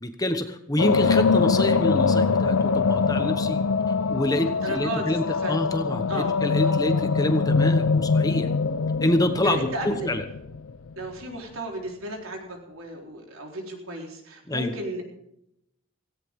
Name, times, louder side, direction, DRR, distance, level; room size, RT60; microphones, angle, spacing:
voice 1, 0.0-3.6 4.1-8.5 9.0-10.2 14.5-14.8, left 1 dB, 15° left, 7 dB, 1.2 m, -26 dB
sound 1, 0.8-10.9, left 4 dB, 85° left, 0.6 m, -23 dB
voice 2, 4.4-5.5 6.1-6.8 9.4-10.1 11.0-15.0, right 1 dB, 85° right, 1 dB, 4.1 m, -35 dB
17.0 x 17.0 x 3.7 m, 0.80 s
head